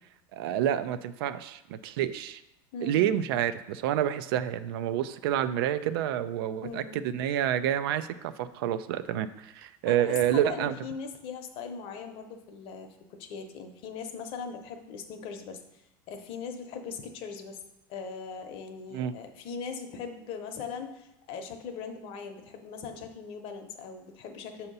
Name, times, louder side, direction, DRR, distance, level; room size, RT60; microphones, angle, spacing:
voice 1, 0.3-2.4 2.8-10.7 18.9-19.1, right 11 dB, 90° right, 13 dB, 0.4 m, -28 dB
voice 2, 2.7-3.1 6.6-7.0 9.9-17.6 17.9-24.7, left 5 dB, 50° left, 6 dB, 0.7 m, -40 dB
6.8 x 2.8 x 5.3 m, 0.92 s
supercardioid pair, 145°, 12 cm